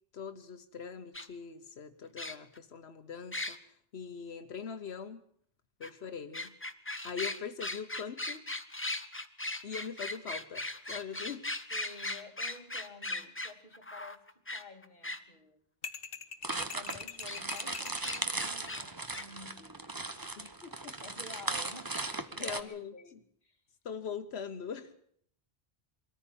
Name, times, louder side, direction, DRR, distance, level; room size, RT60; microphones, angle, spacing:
voice 1, 0.1-5.2 5.8-6.6 7.0-8.5 9.6-11.5 20.3-21.0 22.4-23.2 23.8-24.9, left 6 dB, 90° left, 8 dB, 1.3 m, -42 dB
sound 1, 1.1-1.3 2.2-2.6 3.3-3.6 5.8-5.9 6.3-15.2 17.3-17.4 17.7-18.8 19.1-19.2, left 2 dB, 15° left, 1.0 m, -38 dB
voice 2, 11.7-15.6 16.5-20.0 20.7-23.1 23.4-23.6, left 2 dB, 45° left, 4 dB, 2.2 m, -51 dB
sound 2, 15.8-18.3, left 5 dB, 65° left, 1.3 m, -43 dB
sound 3, 16.4-22.6, right 2 dB, 20° right, 1.0 m, -37 dB
23.0 x 14.5 x 8.7 m, 0.64 s
omnidirectional pair, 1.0 m